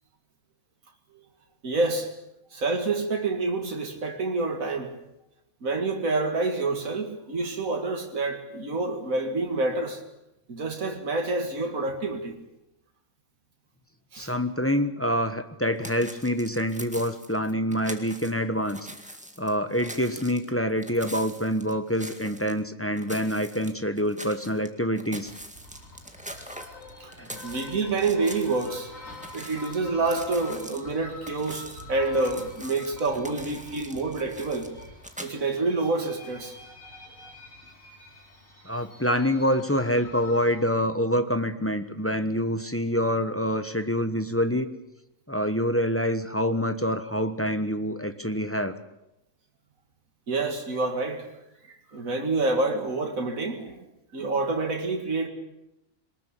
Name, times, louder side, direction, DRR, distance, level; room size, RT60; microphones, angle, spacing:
voice 1, 1.6-2.1 2.5-4.9 5.6-10.0 10.5-12.4 14.1-14.3 27.0-27.1 27.4-28.9 29.3-34.7 35.2-36.6 50.3-51.3 51.7-53.9 54.1-55.3, right 3 dB, 85° right, 3 dB, 2.5 m, -28 dB
voice 2, 14.2-18.8 19.4-25.3 27.2-27.4 38.6-44.7 45.3-48.7, equal, 10° left, 9 dB, 1.1 m, -26 dB
sound 1, 15.8-18.3 18.6-22.6 22.9-24.7 24.9-28.8 29.0-35.3, equal, 5° right, 2.0 m, -43 dB
sound 2, 25.2-40.6, left 2 dB, 75° left, 4.9 m, -46 dB
23.0 x 20.0 x 8.4 m, 0.89 s
omnidirectional pair, 1.4 m